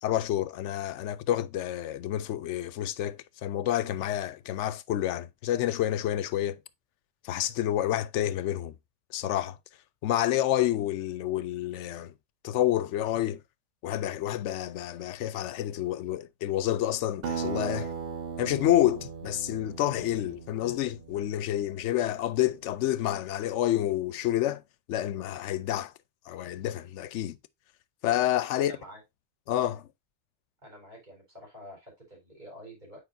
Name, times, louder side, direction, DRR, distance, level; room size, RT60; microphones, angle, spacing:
voice 1, 0.0-6.6 7.2-8.8 9.1-9.6 10.0-12.1 12.4-13.4 13.8-17.9 18.4-24.6 24.9-25.9 26.3-27.4 28.0-28.7 29.5-29.8, left 12 dB, 85° left, 0.9 m, -29 dB
Acoustic guitar, 17.2-22.1, right 6 dB, 60° right, 0.8 m, -38 dB
voice 2, 28.6-29.0 30.6-33.0, equal, 40° right, 4.5 m, -48 dB
9.3 x 4.9 x 2.6 m
omnidirectional pair, 1.2 m